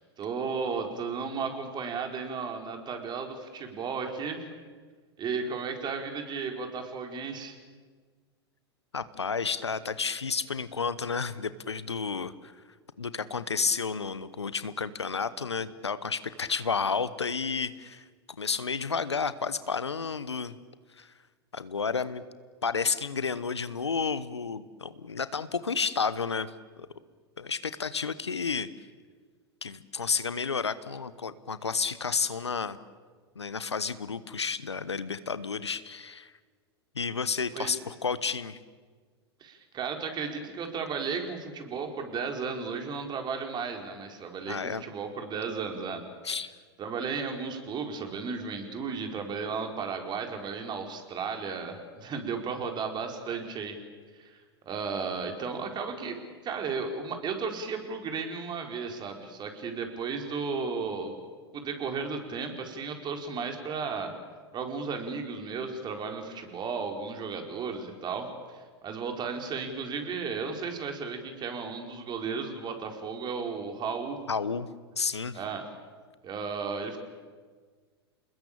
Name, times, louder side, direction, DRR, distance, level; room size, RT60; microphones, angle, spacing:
voice 1, 0.0-4.4 5.2-7.6 37.5-37.7 39.4-46.0 46.8-53.7 54.1-54.4 54.6-56.2 56.4-61.1 61.5-64.1 64.5-74.2 75.3-75.6 76.2-77.0, right 5 dB, 30° right, 4 dB, 4.6 m, -34 dB
voice 2, 8.9-12.5 13.0-18.0 18.4-20.6 21.0-21.1 21.5-22.2 22.6-26.9 27.4-28.9 29.6-32.8 33.3-36.3 36.9-38.6 44.5-44.8 46.2-46.5 74.3-74.7 75.0-75.4, left 5 dB, 90° left, 15 dB, 1.1 m, -31 dB
28.0 x 20.5 x 8.8 m, 1.5 s
hypercardioid pair, 95°, 14 cm